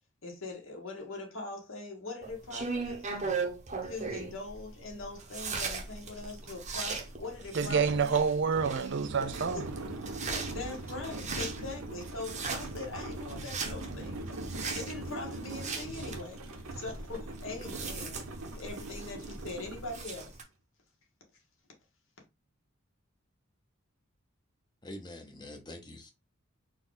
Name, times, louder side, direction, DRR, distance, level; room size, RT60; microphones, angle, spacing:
voice 1, 0.2-3.1 3.8-8.2 9.5-9.6 10.5-14.2 14.7-18.2 18.5-20.4, left 3 dB, 70° left, 1.6 m, -42 dB
sound 1, 2.2-20.4, right 4 dB, 35° right, 0.9 m, -39 dB
sound 2, 5.2-5.3 5.6-20.4, right 2 dB, 85° right, 0.8 m, -42 dB
voice 2, 7.5-9.7, right 5 dB, 55° right, 0.5 m, -28 dB
voice 3, 24.8-26.1, left 1 dB, 20° left, 0.9 m, -45 dB
4.3 x 2.4 x 3.9 m
head